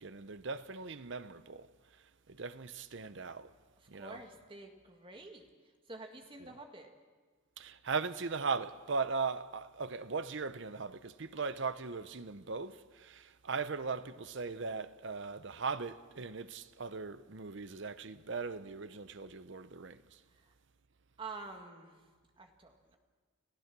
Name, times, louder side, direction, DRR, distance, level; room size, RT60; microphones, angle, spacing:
voice 1, 0.0-1.7 2.3-3.5 3.9-4.2 6.4-6.5 7.6-20.0, right 4 dB, 60° right, 0.7 m, -39 dB
voice 2, 3.9-5.5 5.9-6.9 21.2-22.1 22.4-23.0, right 3 dB, 25° right, 1.8 m, -48 dB
29.5 x 15.0 x 6.1 m
head